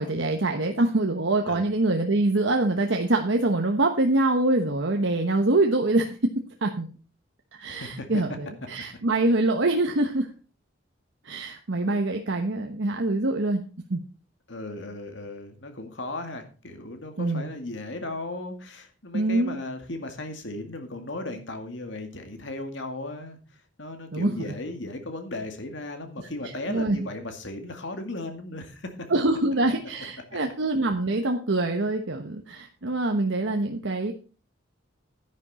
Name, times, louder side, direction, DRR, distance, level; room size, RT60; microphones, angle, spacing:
voice 1, 0.0-6.3 6.6-6.9 7.5-10.3 11.2-13.6 13.9-14.0 17.2-17.5 19.1-19.6 24.1-24.5 26.7-27.0 29.1-34.1, right 2 dB, 65° right, 3 dB, 1.1 m, -24 dB
voice 2, 7.7-8.1 14.5-23.4 23.8-29.1, left 2 dB, 60° left, 6 dB, 2.1 m, -36 dB
10.5 x 9.8 x 4.2 m, 0.35 s
head